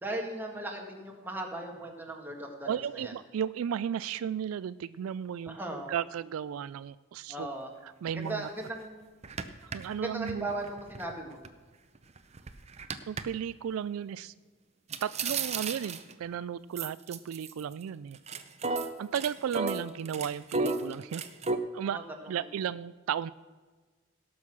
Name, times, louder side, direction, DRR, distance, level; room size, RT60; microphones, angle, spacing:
voice 1, 0.0-3.1 5.5-5.9 7.3-7.7 8.1-9.0 9.9-11.4 21.8-22.5, right 1 dB, 10° right, 0 dB, 1.8 m, -38 dB
voice 2, 2.6-5.6 5.9-7.5 8.0-8.5 9.6-10.5 13.1-14.3 15.0-18.2 19.0-21.2 21.7-22.0 22.3-23.3, right 8 dB, 80° right, 17 dB, 0.3 m, -34 dB
sound 1, 8.2-8.3 8.7-8.8 9.2-11.5 11.9-13.2 14.9-16.2 16.8-17.8 18.1-21.6, right 3 dB, 30° right, 0.7 m, -34 dB
17.5 x 6.3 x 6.1 m, 1.4 s
head